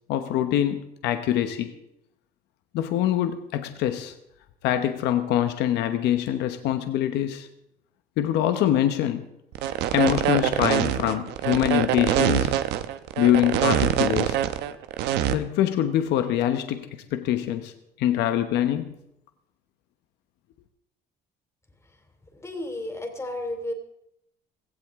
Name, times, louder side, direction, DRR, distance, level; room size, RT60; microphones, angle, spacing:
voice 1, 0.1-1.7 2.7-4.1 4.6-7.5 8.2-9.3 9.6-12.5 13.2-14.4 15.3-17.7 18.0-18.9, left 11 dB, 85° left, 8 dB, 1.0 m, -24 dB
sound 1, 9.5-15.3, right 11 dB, 90° right, 1.0 m, -24 dB
voice 2, 22.3-23.7, left 1 dB, 15° left, 4 dB, 2.9 m, -32 dB
17.0 x 16.0 x 3.7 m, 0.82 s
cardioid pair, 110°, 17 cm